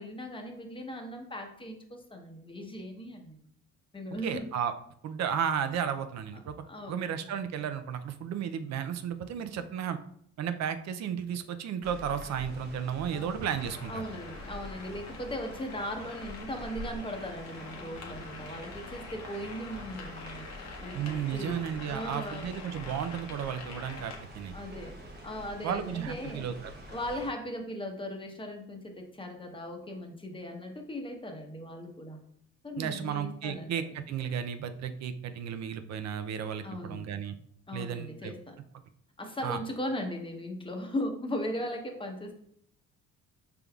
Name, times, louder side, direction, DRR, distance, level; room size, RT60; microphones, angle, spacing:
voice 1, 0.0-3.4 3.9-4.5 6.3-7.1 13.1-13.5 13.9-21.6 21.9-22.5 24.5-24.9 25.2-26.5 26.9-32.2 32.6-33.7 36.6-37.1 37.7-38.5 39.2-42.3, left 1 dB, 15° left, 3 dB, 0.8 m, -38 dB
voice 2, 4.2-4.7 5.0-6.5 6.9-10.0 10.4-14.0 20.9-24.5 25.6-26.5 32.8-37.3 37.7-38.3 39.4-39.6, right 8 dB, 60° right, 10 dB, 0.5 m, -33 dB
sound 1, 11.8-27.3, equal, 35° right, 0.9 m, -46 dB
sound 2, 13.5-24.2, left 4 dB, 60° left, 0.9 m, -46 dB
5.2 x 3.4 x 2.3 m, 0.67 s
cardioid pair, 90°, 30 cm